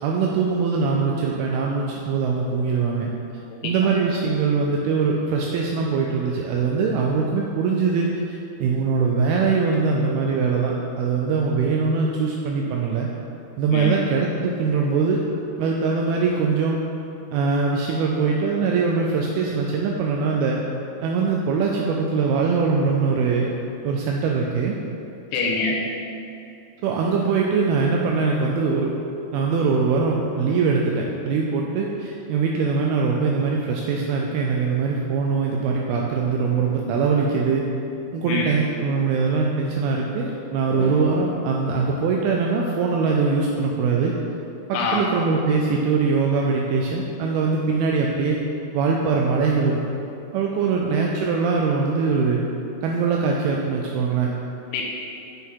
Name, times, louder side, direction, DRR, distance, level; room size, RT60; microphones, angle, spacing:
voice 1, 0.0-3.1 3.6-13.1 13.6-15.2 15.6-16.8 17.3-20.6 21.0-23.5 23.8-24.8 26.8-28.9 29.3-37.6 38.1-44.1 44.7-48.4 48.7-49.8 50.3-52.4 52.8-54.3, right 4 dB, 80° right, -1 dB, 2.4 m, -22 dB
voice 2, 3.5-3.9 13.7-14.0 25.3-25.7 38.3-38.5 44.7-45.0 54.7-54.8, left 3 dB, 85° left, -2 dB, 2.8 m, -25 dB
8.6 x 6.7 x 4.6 m, 2.8 s
omnidirectional pair, 4.7 m